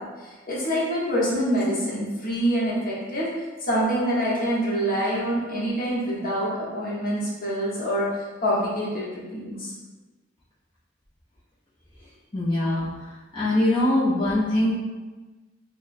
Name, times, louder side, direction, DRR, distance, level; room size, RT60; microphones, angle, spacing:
voice 1, 0.0-3.3 3.6-9.7, equal, 50° left, -6 dB, 1.2 m, -26 dB
voice 2, 12.3-12.9 13.3-14.7, left 1 dB, 25° left, -10 dB, 0.7 m, -22 dB
5.9 x 2.1 x 2.7 m, 1.3 s
head